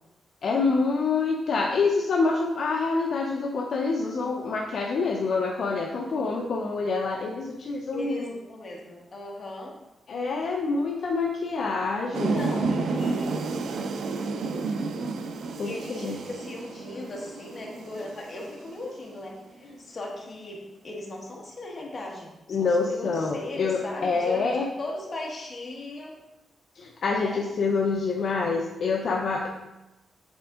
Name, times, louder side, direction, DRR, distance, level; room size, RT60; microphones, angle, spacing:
voice 1, 0.4-8.4 10.1-12.4 15.6-16.2 22.5-24.7 26.8-29.5, left 4 dB, 55° left, 0 dB, 0.6 m, -26 dB
voice 2, 7.9-9.7 12.1-13.6 15.6-20.6 20.8-26.1 27.1-27.4, left 2 dB, 35° left, -2 dB, 1.3 m, -38 dB
sound 1, 12.1-19.1, right 3 dB, 75° right, 0.5 m, -31 dB
8.0 x 3.5 x 3.6 m, 0.98 s
wide cardioid pair, 145°, 0 cm